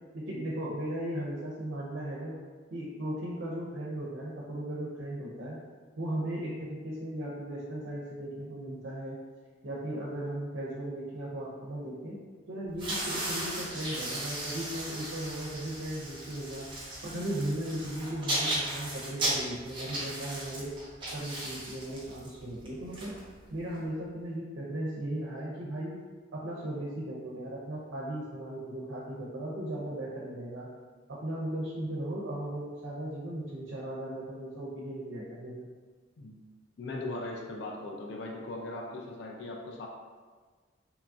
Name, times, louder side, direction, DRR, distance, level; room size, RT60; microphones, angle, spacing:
voice 1, 0.1-2.3 2.7-5.6 6.0-9.2 9.6-12.2 12.5-16.7 17.0-20.7 21.1-23.1 23.5-26.0 26.3-30.7 31.1-35.7, right 1 dB, 70° right, -5 dB, 0.5 m, -37 dB
sound 1, 12.7-23.7, right 1 dB, 25° right, 0.6 m, -36 dB
voice 2, 36.8-39.9, left 2 dB, 60° left, 0 dB, 0.3 m, -39 dB
2.9 x 2.3 x 2.5 m, 1.4 s
head